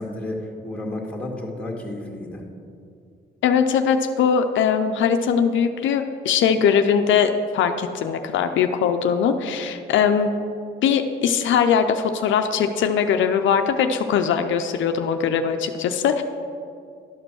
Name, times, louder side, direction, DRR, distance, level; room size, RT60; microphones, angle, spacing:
voice 1, 0.0-2.4, left 1 dB, 5° left, -1 dB, 1.8 m, -31 dB
voice 2, 3.4-10.3 10.8-16.2, left 7 dB, 75° left, 7 dB, 0.6 m, -21 dB
11.5 x 5.1 x 6.3 m, 2.4 s
cardioid pair, 90°, 20 cm